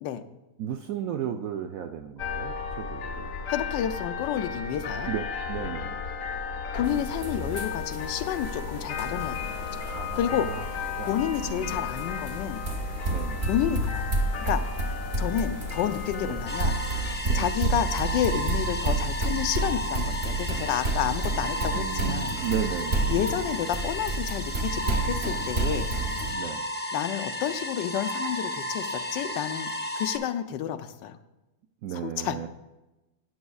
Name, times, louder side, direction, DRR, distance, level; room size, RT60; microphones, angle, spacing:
voice 1, 0.6-3.3 5.1-6.0 9.9-10.6 11.0-11.2 11.4-11.9 13.1-13.5 16.2-16.4 17.2-17.4 21.7-23.1 26.3-26.7 31.8-32.5, right 9 dB, 75° right, 6 dB, 0.8 m, -34 dB
sound 1, 2.2-17.2, left 5 dB, 60° left, 0.9 m, -34 dB
voice 2, 3.5-5.1 6.7-9.8 10.2-10.5 10.7-12.6 13.5-16.8 17.3-22.4 23.1-25.9 26.9-31.2 31.9-32.5, left 10 dB, 85° left, 10 dB, 1.3 m, -30 dB
sound 2, 6.8-26.3, right 2 dB, 45° right, 1.0 m, -31 dB
sound 3, 16.5-30.2, equal, 15° left, 0.4 m, -33 dB
12.0 x 9.6 x 2.3 m, 1.0 s
omnidirectional pair, 1.9 m